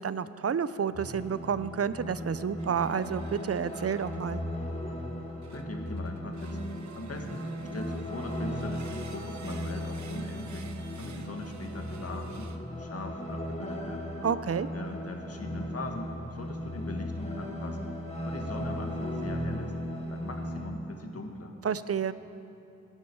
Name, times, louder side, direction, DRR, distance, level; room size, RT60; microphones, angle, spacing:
voice 1, 0.0-4.4 14.2-14.7 21.6-22.1, right 7 dB, 55° right, 14 dB, 0.6 m, -30 dB
sound 1, 0.9-20.7, equal, 25° left, 2.8 m, -37 dB
sound 2, 2.6-4.5 5.4-12.9 13.6-13.9, right 5 dB, 70° right, 0.9 m, -52 dB
voice 2, 5.5-6.6 6.9-10.7 11.0-14.0 14.7-17.9 18.3-19.8 20.1-21.5, left 2 dB, 55° left, 4 dB, 1.8 m, -40 dB
17.5 x 11.0 x 4.7 m, 2.9 s
cardioid pair, 45°, 29 cm